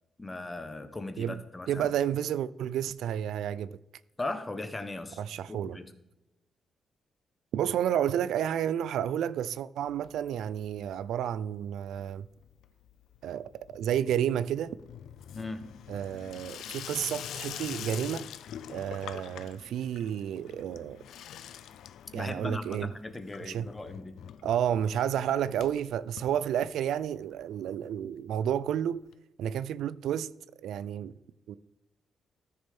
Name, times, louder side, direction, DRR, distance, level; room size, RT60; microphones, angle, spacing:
voice 1, 0.2-1.9 4.2-5.2 5.5-5.9 15.3-15.7 22.1-24.1, left 2 dB, 15° left, 1.0 m, -38 dB
voice 2, 1.7-3.8 5.2-5.8 7.5-12.3 13.2-14.7 15.9-18.2 18.7-21.0 22.1-22.9 23.4-23.7 24.4-29.0 29.4-30.3 30.6-31.1 31.5-31.6, right 10 dB, 90° right, 0.4 m, -31 dB
Water tap faucet / Sink (filling or washing), 9.9-10.7 10.9-11.5 11.8-27.1 27.4-27.5 27.7-27.8 28.0-28.1 29.1-29.2, left 9 dB, 90° left, 0.4 m, -45 dB
14.0 x 6.6 x 3.5 m
cardioid pair, 130°, 0 cm